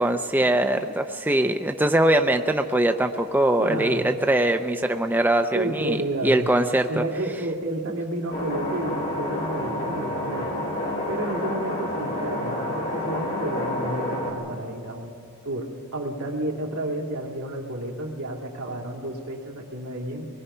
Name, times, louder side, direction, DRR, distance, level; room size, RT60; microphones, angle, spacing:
voice 1, 0.0-7.0, right 1 dB, 10° right, 5 dB, 0.5 m, -22 dB
voice 2, 3.6-4.2 5.5-6.5 6.9-10.6 11.1-15.2 15.4-20.3, right 1 dB, 75° right, 0 dB, 2.5 m, -31 dB
sound 1, 8.3-14.3, left 1 dB, 50° left, 4.0 m, -29 dB
23.5 x 20.5 x 5.6 m, 2.4 s
head